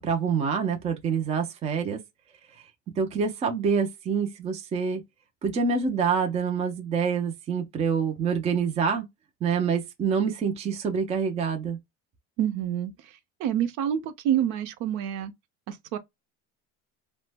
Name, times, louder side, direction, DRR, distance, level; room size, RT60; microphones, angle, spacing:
voice 1, 0.0-2.0 3.0-5.0 5.4-9.0 9.4-11.8, right 6 dB, 20° right, 0.4 m, -26 dB
voice 2, 12.4-12.9 13.4-15.3 15.7-16.0, right 10 dB, 65° right, 0.6 m, -27 dB
3.0 x 2.1 x 3.3 m
cardioid pair, 170°, 32 cm